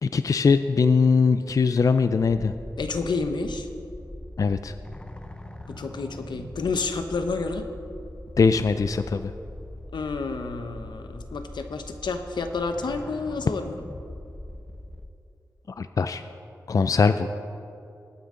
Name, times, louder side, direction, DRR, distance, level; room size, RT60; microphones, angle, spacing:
voice 1, 0.0-2.5 4.4-4.7 8.4-9.3 15.8-16.2 16.7-17.3, left 5 dB, 50° left, 10 dB, 0.4 m, -21 dB
sound 1, 2.2-15.1, left 1 dB, 15° left, 0.7 m, -41 dB
voice 2, 2.8-3.7 5.7-7.6 9.9-13.8, left 4 dB, 85° left, 7 dB, 0.8 m, -30 dB
19.0 x 9.3 x 3.8 m, 2.7 s
wide cardioid pair, 90°, 7 cm